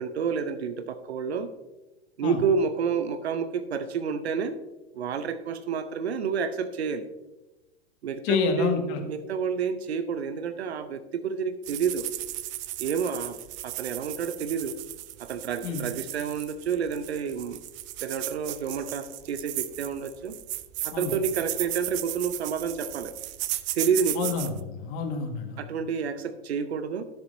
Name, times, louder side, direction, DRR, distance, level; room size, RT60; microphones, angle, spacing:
voice 1, 0.0-1.5 2.2-4.6 4.9-7.1 8.0-8.7 9.0-12.1 12.8-13.4 13.6-14.8 15.2-17.6 18.0-20.4 20.8-23.1 23.7-24.3 25.6-27.0, right 6 dB, 75° right, 11 dB, 0.8 m, -29 dB
voice 2, 8.2-9.0 15.6-15.8 20.9-21.1 24.2-25.6, left 6 dB, 45° left, 4 dB, 1.7 m, -28 dB
sound 1, 11.6-24.6, right 16 dB, 25° right, 0.3 m, -35 dB
14.0 x 6.9 x 2.6 m, 1.1 s
hypercardioid pair, 105°, 32 cm